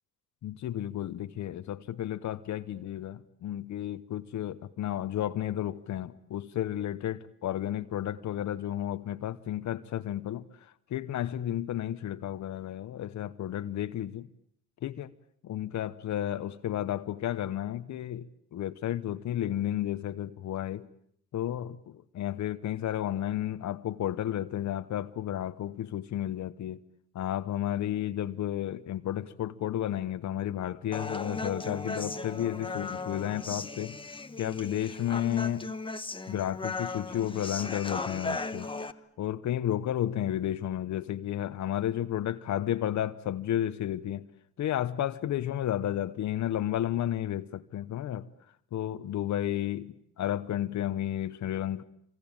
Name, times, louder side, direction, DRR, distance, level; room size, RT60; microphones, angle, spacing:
voice 1, 0.4-14.3 14.8-15.1 15.4-20.9 21.3-26.8 27.1-33.9 34.4-35.7 36.3-38.7 39.2-44.3 44.6-48.3 48.7-51.8, left 11 dB, 70° left, 1.1 m, -32 dB
Human voice, 30.9-38.9, left 3 dB, 15° left, 1.4 m, -37 dB
27.5 x 24.5 x 8.9 m
cardioid pair, 90°, 30 cm